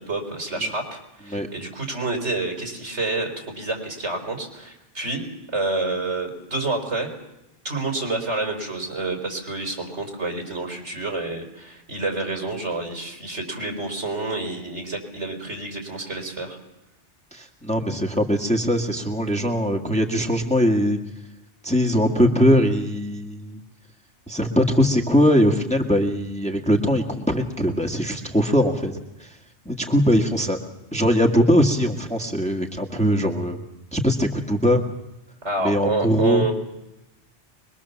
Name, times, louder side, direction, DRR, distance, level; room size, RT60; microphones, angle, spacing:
voice 1, 0.0-5.2 5.5-7.1 7.6-16.6 35.4-36.5, right 2 dB, 80° right, 4 dB, 5.3 m, -28 dB
voice 2, 17.3-21.0 21.6-23.6 24.3-29.3 29.7-30.6 30.9-33.6 33.9-34.8 35.6-36.4, equal, 5° left, 3 dB, 2.0 m, -21 dB
24.0 x 22.5 x 7.3 m, 0.92 s
omnidirectional pair, 1.2 m